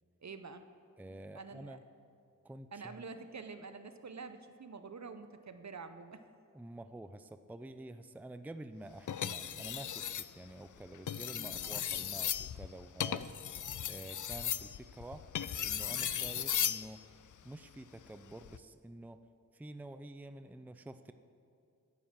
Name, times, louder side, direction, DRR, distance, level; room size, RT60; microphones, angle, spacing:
voice 1, 0.2-0.7 1.0-1.8 2.7-6.2, right 4 dB, 60° right, 9 dB, 0.8 m, -47 dB
voice 2, 1.0-1.8 2.4-3.0 6.5-15.2 15.6-17.0 17.4-19.2 19.5-21.1, right 1 dB, 5° right, 10 dB, 0.4 m, -49 dB
sound 1, 9.1-10.3 10.9-16.9 18.3-18.6, left 9 dB, 70° left, 0.4 m, -36 dB
10.5 x 9.8 x 7.5 m, 2.4 s
wide cardioid pair, 80°, 31 cm